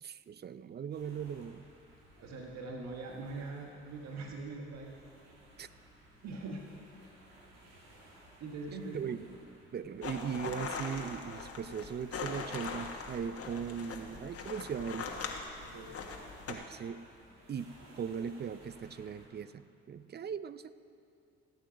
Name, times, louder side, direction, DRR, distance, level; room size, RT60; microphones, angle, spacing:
voice 1, 0.0-1.6 5.6-5.7 8.9-9.2 9.7-15.1 16.5-17.1 17.5-20.7, right 7 dB, 35° right, 15 dB, 0.5 m, -39 dB
sound 1, 0.9-19.3, right 1 dB, 85° right, 2.4 m, -59 dB
voice 2, 2.2-4.9 5.2-5.4 6.2-6.8 8.4-9.1 15.6-16.0, right 3 dB, 60° right, 1 dB, 1.3 m, -42 dB
sound 2, 10.0-16.5, left 5 dB, 50° left, 1.5 m, -41 dB
17.0 x 7.8 x 5.1 m, 2.5 s
supercardioid pair, 60°, 30 cm